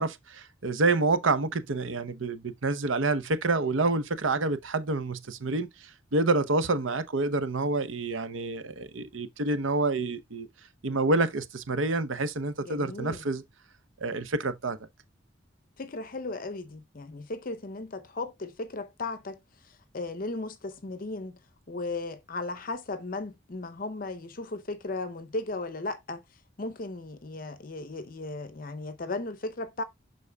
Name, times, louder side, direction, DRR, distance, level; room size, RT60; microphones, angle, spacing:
voice 1, 0.0-10.5 10.8-13.4 14.0-14.8, right 3 dB, 80° right, 0.8 m, -28 dB
voice 2, 12.6-13.2 15.8-19.4 19.6-21.4 21.7-26.2 26.6-29.8, left 2 dB, 45° left, 0.6 m, -36 dB
11.5 x 3.9 x 2.3 m
head